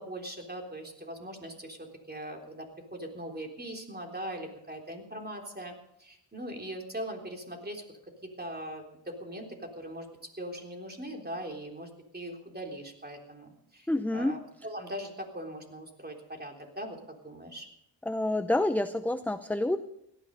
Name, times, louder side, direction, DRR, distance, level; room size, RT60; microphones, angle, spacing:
voice 1, 0.0-7.8 8.2-10.1 10.4-17.7, right 1 dB, 20° right, 2 dB, 3.6 m, -41 dB
voice 2, 13.9-14.4 18.0-19.8, left 1 dB, 5° left, 10 dB, 0.6 m, -28 dB
17.0 x 13.0 x 5.3 m, 0.77 s
cardioid pair, 75°, 46 cm